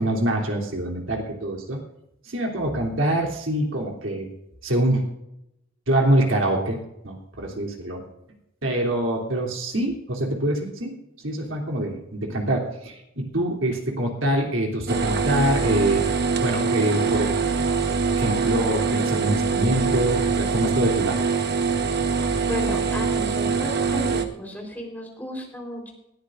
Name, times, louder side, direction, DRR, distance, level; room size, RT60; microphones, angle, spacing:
voice 1, 0.0-1.8 2.3-4.3 4.6-5.0 5.9-6.8 7.0-8.0 8.6-10.9 11.2-16.0 16.4-17.3 18.1-21.2, right 1 dB, 80° right, 0 dB, 3.2 m, -24 dB
sound 1, 14.9-24.2, right 5 dB, 55° right, 1.2 m, -23 dB
voice 2, 22.5-25.9, equal, 10° left, 0 dB, 4.0 m, -33 dB
20.5 x 13.5 x 2.6 m, 0.84 s
head